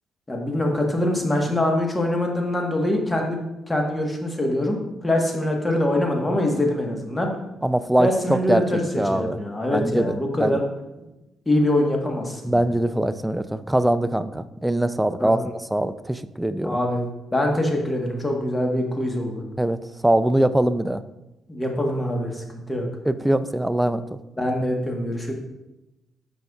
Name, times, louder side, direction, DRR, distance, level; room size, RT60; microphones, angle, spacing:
voice 1, 0.3-7.3 8.0-8.8 9.1-10.6 11.5-12.6 15.2-15.4 16.6-17.0 17.3-19.4 21.5-22.9 24.4-25.3, left 1 dB, 15° left, 1 dB, 1.2 m, -24 dB
voice 2, 7.6-9.4 9.7-10.6 12.4-15.4 15.7-16.8 19.6-19.8 20.0-21.0 23.1-24.2, right 1 dB, 5° right, 12 dB, 0.3 m, -22 dB
7.8 x 5.4 x 2.3 m, 0.96 s
cardioid pair, 90°, 0 cm